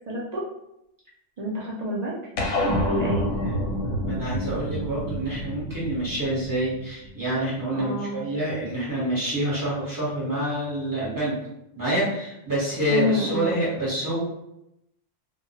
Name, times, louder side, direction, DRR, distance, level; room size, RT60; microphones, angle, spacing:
voice 1, 0.1-0.4 1.4-2.2 2.8-3.3 7.7-8.2 12.9-13.6, left 1 dB, 55° right, -4 dB, 0.4 m, -28 dB
sound 1, 2.4-7.1, equal, 60° left, 0.7 m, -28 dB
voice 2, 3.4-11.4 11.8-14.2, right 1 dB, 20° right, -8 dB, 0.8 m, -27 dB
2.2 x 2.1 x 2.9 m, 0.83 s
omnidirectional pair, 1.2 m